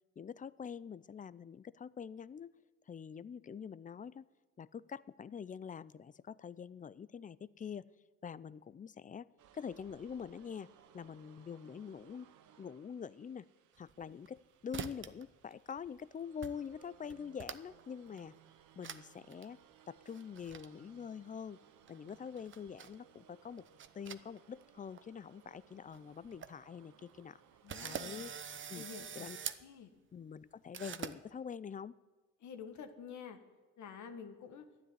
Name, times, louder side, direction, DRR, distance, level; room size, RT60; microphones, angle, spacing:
voice 1, 0.2-2.5 2.9-4.3 4.6-7.9 8.2-9.3 9.5-10.7 10.9-12.3 12.6-13.5 13.8-18.3 18.8-19.6 19.9-21.6 21.9-23.7 23.9-27.4 27.8-28.3 28.7-28.8 29.2-29.4 30.1-31.9, left 7 dB, 25° left, 19 dB, 0.4 m, -45 dB
sound 1, 9.4-29.0, right 9 dB, 80° right, 1.0 m, -64 dB
sound 2, 13.8-14.4 14.7-15.2 15.5-16.0 16.4-16.5 16.8-17.8 18.2-18.3 18.8-19.0 19.3-19.5 20.1-20.7 21.9-23.0 23.5-24.6 24.9-25.0 25.6-25.7 25.9-26.0 26.2-26.5 27.0-27.1 27.7-29.6 30.7-31.2, right 7 dB, 40° right, 0.8 m, -45 dB
voice 2, 27.6-28.2 28.7-29.3 29.6-29.9 32.4-33.4 33.8-34.7, left 7 dB, 70° left, 7 dB, 1.6 m, -49 dB
12.0 x 10.0 x 9.6 m, 1.3 s
cardioid pair, 90°, 30 cm